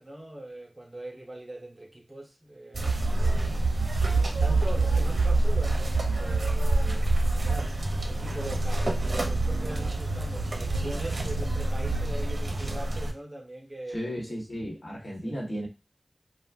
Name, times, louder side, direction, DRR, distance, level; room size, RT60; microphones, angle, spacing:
voice 1, 0.0-3.7 4.4-7.1 7.4-7.8 8.0-14.4 15.2-15.3, right 1 dB, 30° right, 0.7 m, -41 dB
sound 1, 2.7-13.1, right 2 dB, 70° right, 0.6 m, -26 dB
voice 2, 13.9-15.7, equal, 50° left, 1.1 m, -34 dB
2.4 x 2.2 x 3.4 m
wide cardioid pair, 60°, 0 cm